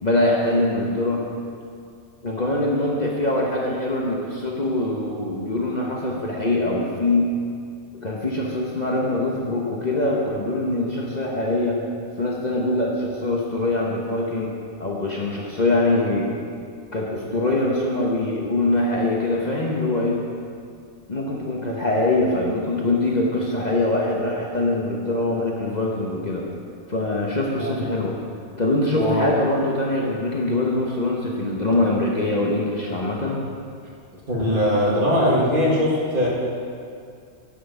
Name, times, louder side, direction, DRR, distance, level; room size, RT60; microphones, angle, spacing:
voice 1, 0.0-1.2 2.2-7.3 8.0-11.8 12.2-16.3 16.9-20.2 21.1-26.5 26.9-28.1 28.6-33.4, left 2 dB, 35° left, -3 dB, 1.1 m, -23 dB
voice 2, 29.0-29.3 34.3-36.3, equal, 45° right, -5 dB, 2.2 m, -21 dB
10.0 x 5.9 x 7.1 m, 2.3 s
omnidirectional pair, 1.3 m